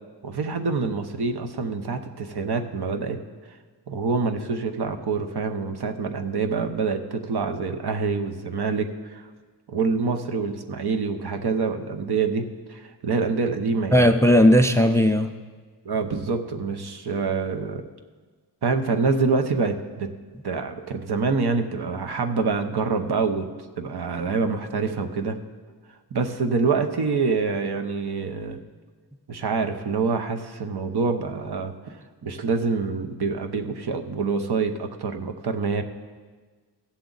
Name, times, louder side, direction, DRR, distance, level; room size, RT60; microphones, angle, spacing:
voice 1, 0.2-3.2 3.9-9.3 9.7-14.1 15.8-17.8 18.6-20.1 20.4-23.5 23.8-25.4 26.1-28.6 29.3-32.0 32.2-35.8, right 4 dB, 70° right, 6 dB, 0.8 m, -26 dB
voice 2, 13.9-15.3, equal, 10° left, 8 dB, 0.4 m, -16 dB
16.0 x 7.2 x 3.9 m, 1.4 s
wide cardioid pair, 105°, 40 cm